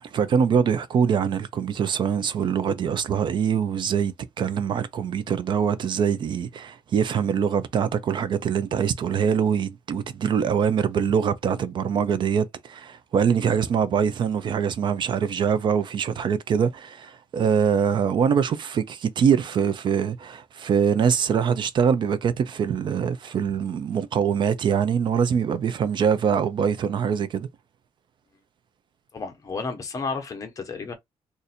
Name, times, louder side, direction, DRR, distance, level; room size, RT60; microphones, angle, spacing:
voice 1, 0.0-27.5, right 7 dB, 50° right, 0.4 m, -23 dB
voice 2, 29.1-30.9, left 4 dB, 35° left, 0.9 m, -32 dB
2.5 x 2.5 x 4.2 m
wide cardioid pair, 165°, 10 cm